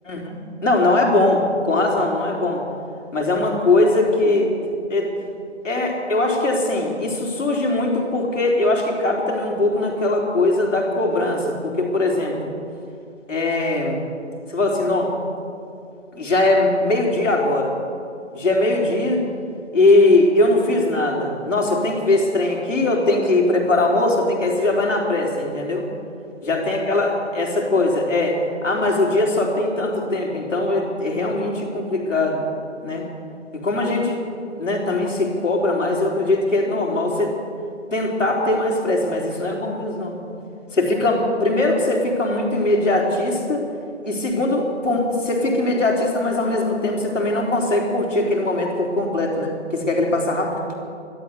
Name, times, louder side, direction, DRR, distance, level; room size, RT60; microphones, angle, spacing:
voice 1, 0.1-2.6 3.1-4.5 4.9-5.1 5.6-12.5 13.3-14.0 14.5-15.1 16.1-17.7 18.3-19.2 19.7-25.8 26.4-32.4 32.8-33.1 33.5-34.2 34.6-37.3 37.9-40.2 40.7-43.7 44.0-50.6, left 2 dB, 85° left, 0 dB, 4.1 m, -20 dB
12.5 x 12.5 x 8.2 m, 2.6 s
hypercardioid pair, 175°, 36 cm